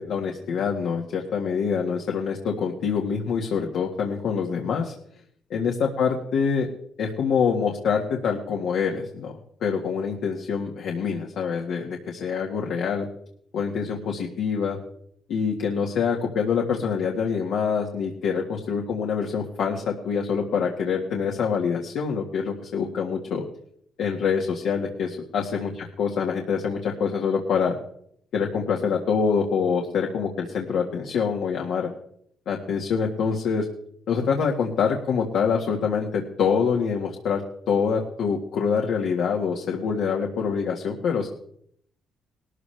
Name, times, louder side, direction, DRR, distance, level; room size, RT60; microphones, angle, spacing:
voice 1, 0.0-4.9 5.5-6.7 7.0-9.3 9.6-13.1 13.5-14.8 15.3-23.4 24.0-27.8 28.3-31.9 32.5-33.7 34.1-41.3, left 6 dB, 75° left, 0 dB, 1.8 m, -25 dB
19.0 x 13.5 x 3.4 m, 0.67 s
cardioid pair, 90°, 0 cm